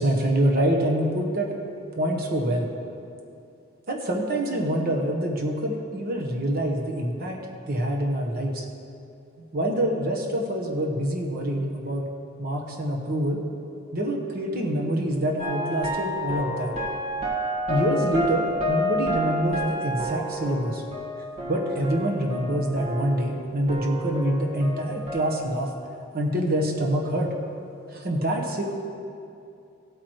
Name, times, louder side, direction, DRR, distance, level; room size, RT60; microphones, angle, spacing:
voice 1, 0.0-1.5 2.0-2.7 3.9-7.4 7.7-8.6 9.5-12.0 12.4-13.4 13.9-16.7 17.7-20.8 21.5-25.7 26.1-27.3 27.9-28.6, right 1 dB, 50° right, 1 dB, 1.2 m, -26 dB
sound 1, 15.4-23.4 23.7-25.4, equal, 30° right, 1.7 m, -30 dB
17.0 x 8.8 x 3.2 m, 2.6 s
head